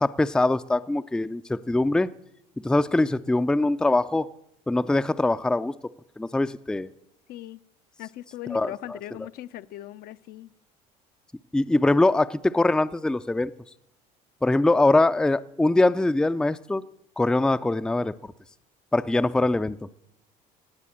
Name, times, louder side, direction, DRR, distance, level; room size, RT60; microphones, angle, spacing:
voice 1, 0.0-2.1 2.6-4.3 4.7-5.7 6.2-6.9 8.5-9.0 11.5-13.5 14.4-16.8 17.2-18.3 18.9-19.8, left 2 dB, 5° left, 12 dB, 0.4 m, -22 dB
voice 2, 7.3-7.6 8.0-10.5, left 14 dB, 60° left, 12 dB, 0.6 m, -39 dB
18.5 x 7.6 x 7.4 m, 0.79 s
supercardioid pair, 95°, 18 cm